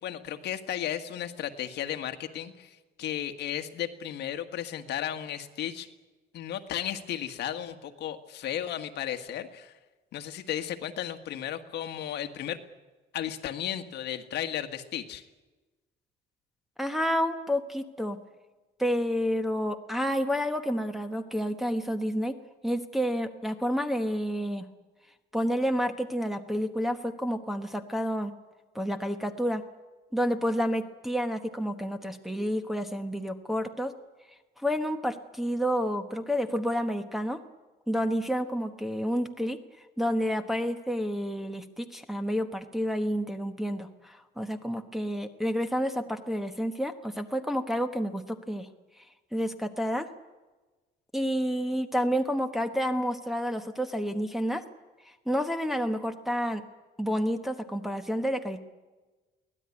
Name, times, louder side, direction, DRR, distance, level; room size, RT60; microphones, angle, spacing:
voice 1, 0.0-5.9 6.3-9.7 10.1-12.6 13.1-15.2, left 10 dB, 65° left, 7 dB, 1.7 m, -34 dB
voice 2, 16.8-18.2 18.8-22.4 22.6-24.7 25.3-28.3 28.7-29.6 30.1-33.9 34.6-37.4 37.9-39.6 40.0-48.7 49.3-50.1 51.1-54.6 55.3-56.6 57.0-58.6, equal, ahead, 4 dB, 1.1 m, -29 dB
23.5 x 17.5 x 9.7 m, 1.2 s
cardioid pair, 160°, 19 cm